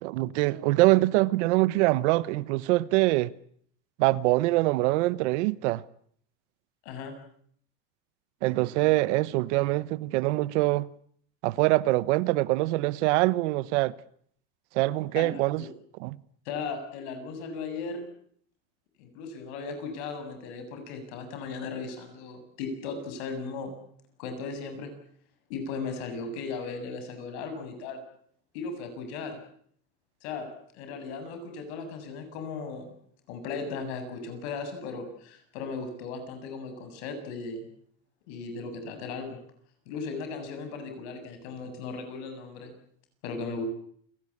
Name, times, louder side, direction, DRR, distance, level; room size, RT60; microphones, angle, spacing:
voice 1, 0.0-3.3 4.0-5.8 8.4-10.9 11.4-13.9 14.7-15.6 16.0-16.2, right 19 dB, 85° right, 1.1 m, -24 dB
voice 2, 15.1-15.7 16.5-18.1 19.0-23.7 24.2-24.9 25.5-28.0 28.5-29.4 30.2-30.5 30.7-32.9 33.3-37.7 38.3-39.4 39.9-42.7 43.2-43.7, left 4 dB, 75° left, 7.5 m, -37 dB
28.5 x 18.5 x 8.6 m
cardioid pair, 170°, 34 cm